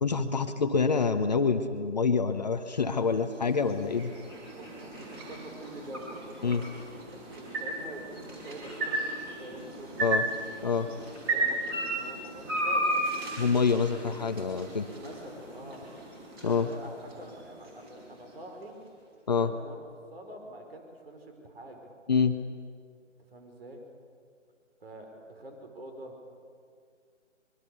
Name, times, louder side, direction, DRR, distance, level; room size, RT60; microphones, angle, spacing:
voice 1, 0.0-4.1 6.4-6.6 10.0-10.2 10.6-10.9 13.4-14.9 16.4-16.7 19.3-19.5 22.1-22.4, left 5 dB, 35° left, 8 dB, 0.9 m, -26 dB
sound 1, 2.4-18.6, right 1 dB, 20° right, 4.9 m, -35 dB
voice 2, 4.5-10.2 11.3-12.9 14.9-15.9 16.5-18.8 19.3-21.9 23.3-23.8 24.8-26.3, right 1 dB, 50° right, 3 dB, 5.3 m, -46 dB
24.0 x 23.0 x 6.9 m, 2.2 s
figure-of-eight pair, 155°, 37 cm